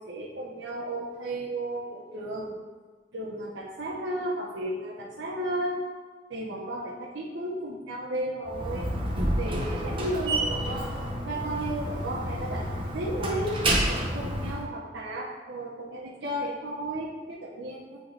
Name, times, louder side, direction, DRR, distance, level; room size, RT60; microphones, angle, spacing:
voice 1, 0.0-2.5 3.1-5.8 6.3-8.9 9.3-13.6 14.1-18.0, right 1 dB, 85° right, -5 dB, 0.8 m, -34 dB
Slam, 8.4-14.6, right 1 dB, 30° right, 0.9 m, -29 dB
8.3 x 3.0 x 3.8 m, 1.4 s
head